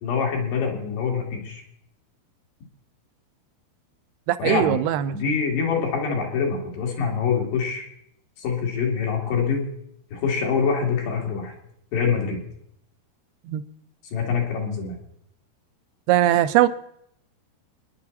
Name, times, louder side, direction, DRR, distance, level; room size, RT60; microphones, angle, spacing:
voice 1, 0.0-1.6 4.4-4.8 5.1-7.9 8.4-9.7 10.1-11.5 11.9-12.4 14.1-15.0, left 6 dB, 85° left, 4.8 m, -25 dB
voice 2, 4.3-5.2 13.5-13.6 16.1-16.7, right 13 dB, 80° right, 2.6 m, -20 dB
27.0 x 10.5 x 4.2 m
omnidirectional pair, 4.7 m